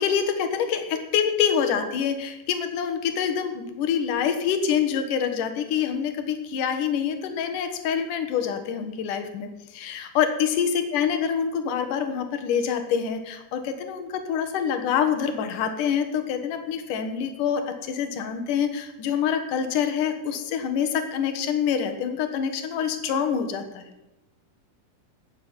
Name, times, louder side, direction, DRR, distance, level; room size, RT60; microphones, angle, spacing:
voice 1, 0.0-23.8, left 7 dB, 70° left, 6 dB, 2.8 m, -26 dB
14.5 x 6.9 x 8.8 m, 1.0 s
omnidirectional pair, 4.0 m